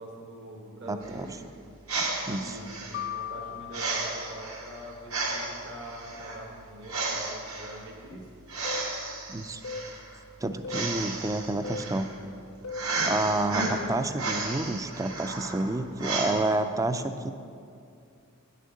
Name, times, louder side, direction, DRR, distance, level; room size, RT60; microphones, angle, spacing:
voice 1, 0.0-1.3 2.4-2.6 2.9-8.3, right 1 dB, 55° right, -2 dB, 1.3 m, -43 dB
voice 2, 0.9-1.3 2.2-2.5 9.3-9.6 10.4-12.1 13.0-17.3, right 2 dB, 15° right, 9 dB, 0.4 m, -29 dB
sound 1, 1.0-16.3, right 3 dB, 75° right, 1.8 m, -34 dB
sound 2, 2.9-5.1, left 11 dB, 55° left, 0.3 m, -39 dB
sound 3, 8.6-8.9 9.6-9.9 10.6-10.9 11.6-11.9 12.6-12.9 13.6-14.0, left 3 dB, 70° left, 0.7 m, -37 dB
9.8 x 6.5 x 7.7 m, 2.4 s
head